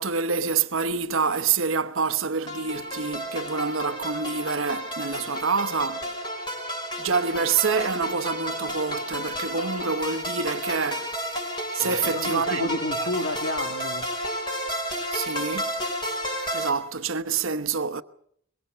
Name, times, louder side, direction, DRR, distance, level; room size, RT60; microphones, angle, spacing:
voice 1, 0.0-6.1 7.0-11.1 11.7-12.7 13.0-13.1 15.1-15.7 16.5-18.0, right 5 dB, 85° right, 1.0 m, -27 dB
sound 1, 2.5-16.7, equal, 20° left, 4.7 m, -31 dB
voice 2, 11.8-14.1, left 1 dB, 80° left, 2.0 m, -31 dB
23.0 x 22.0 x 6.8 m
head